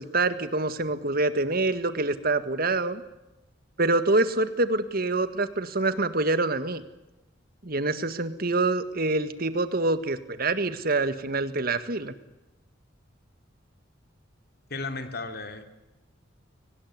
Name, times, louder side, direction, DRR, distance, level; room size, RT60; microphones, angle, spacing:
voice 1, 0.0-3.0 3.8-6.8 7.6-12.1, right 2 dB, 50° right, 11 dB, 1.8 m, -26 dB
voice 2, 14.7-15.6, left 3 dB, 55° left, 7 dB, 3.0 m, -34 dB
23.5 x 19.5 x 9.7 m, 0.96 s
head